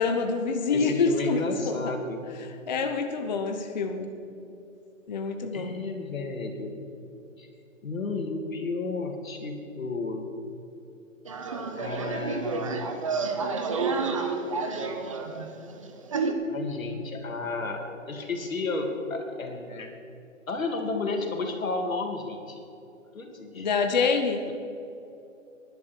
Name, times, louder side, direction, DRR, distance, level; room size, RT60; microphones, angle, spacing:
voice 1, 0.0-1.9 2.4-4.1 5.1-5.7 23.5-24.4, left 4 dB, 35° left, 5 dB, 0.8 m, -27 dB
voice 2, 0.7-2.3 5.5-6.8 7.4-7.5 7.8-10.3 11.8-12.9 14.8-15.2 16.4-19.9 20.5-22.6 23.1-23.7, left 3 dB, 90° left, 3 dB, 2.8 m, -32 dB
sound 1, 11.3-16.3, right 4 dB, 25° right, 0.8 m, -30 dB
19.0 x 11.0 x 4.6 m, 2.8 s
hypercardioid pair, 170°, 39 cm